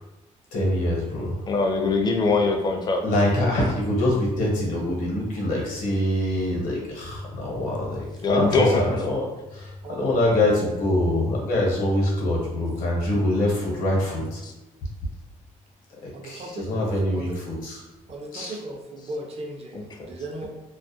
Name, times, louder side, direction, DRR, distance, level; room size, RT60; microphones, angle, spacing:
voice 1, 0.5-1.4 3.0-9.6 10.0-14.4 16.0-17.8 18.3-18.5, left 1 dB, 85° left, -2 dB, 0.8 m, -24 dB
voice 2, 1.5-3.0 8.2-8.8 19.7-20.1, left 3 dB, 30° left, 3 dB, 0.4 m, -22 dB
voice 3, 9.8-10.2 16.1-17.4 18.1-20.5, right 1 dB, 45° right, 1 dB, 0.5 m, -37 dB
2.3 x 2.1 x 2.6 m, 1.0 s
cardioid pair, 100°, 14 cm